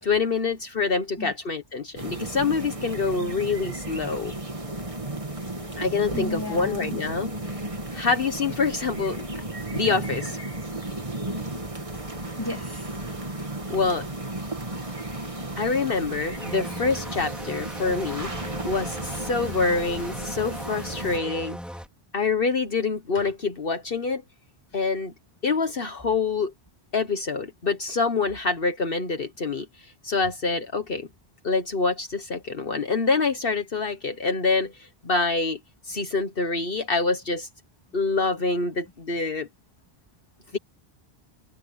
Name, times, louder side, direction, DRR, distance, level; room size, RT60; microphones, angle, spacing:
voice 1, 0.0-4.3 5.8-7.6 7.9-9.4 9.7-10.4 13.7-14.1 15.6-21.6 22.1-24.2 24.7-25.1 25.4-26.5 26.9-31.1 31.4-35.6 35.8-37.5 37.9-39.5 40.5-40.6, left 4 dB, 60° left, 1.6 m, -26 dB
sound 1, 2.0-21.2, right 2 dB, 30° right, 2.2 m, -34 dB
voice 2, 6.1-7.0 11.7-11.8 12.2-13.2, left 1 dB, 20° left, 3.1 m, -35 dB
sound 2, 16.3-21.9, equal, ahead, 4.4 m, -38 dB
omnidirectional pair, 1.1 m